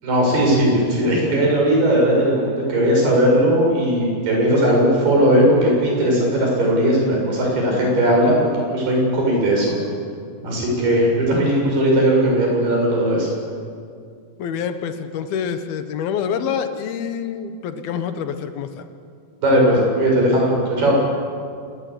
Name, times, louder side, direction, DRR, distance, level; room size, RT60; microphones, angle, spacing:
voice 1, 0.0-9.7 10.4-13.3 19.4-21.0, equal, 85° right, -1 dB, 9.2 m, -18 dB
voice 2, 14.4-18.9, left 7 dB, 75° left, 9 dB, 3.2 m, -26 dB
27.0 x 21.0 x 8.6 m, 2.3 s
omnidirectional pair, 4.4 m